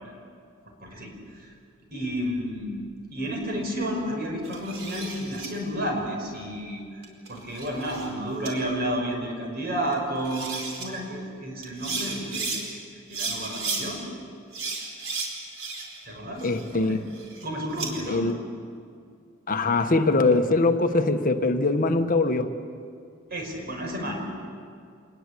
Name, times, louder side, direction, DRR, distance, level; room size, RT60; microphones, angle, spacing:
voice 1, 0.8-1.5 1.9-2.8 3.1-7.0 7.3-14.0 16.1-17.0 17.4-18.3 23.3-24.3, equal, 50° right, 1 dB, 5.7 m, -31 dB
sound 1, 4.4-5.5 7.0-8.1 8.4-8.5 9.9-10.0 10.2-10.9 11.6-12.6 13.1-13.8 14.5-16.0 16.4-17.9, right 4 dB, 75° right, 4.8 m, -34 dB
voice 2, 16.4-17.0 18.1-18.3 19.5-22.5, left 3 dB, 45° left, 7 dB, 1.2 m, -22 dB
26.0 x 20.5 x 8.4 m, 2.3 s
head